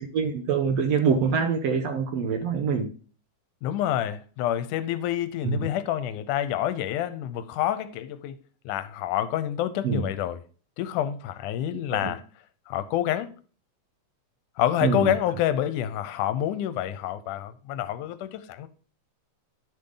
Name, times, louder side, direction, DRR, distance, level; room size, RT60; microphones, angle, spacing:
voice 1, 0.0-2.9 5.4-5.7 9.8-10.1 11.7-12.1 14.8-15.1, right 6 dB, 70° right, 1.6 m, -25 dB
voice 2, 3.6-8.4 8.7-10.4 10.8-12.2 12.7-13.3 14.6-18.7, left 11 dB, 80° left, 2.1 m, -28 dB
10.5 x 6.7 x 3.8 m
omnidirectional pair, 3.7 m